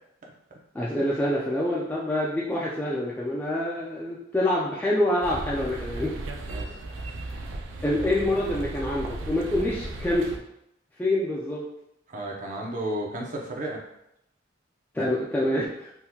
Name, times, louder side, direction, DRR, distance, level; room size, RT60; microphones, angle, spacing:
voice 1, 0.7-6.1 7.8-10.4 11.0-11.7 14.9-15.9, left 1 dB, 10° left, -5 dB, 0.3 m, -26 dB
sound 1, 5.2-10.4, right 2 dB, 90° right, 0.4 m, -35 dB
voice 2, 6.4-6.7 12.1-13.8, right 1 dB, 45° right, -2 dB, 0.7 m, -33 dB
3.6 x 2.8 x 2.3 m, 0.82 s
head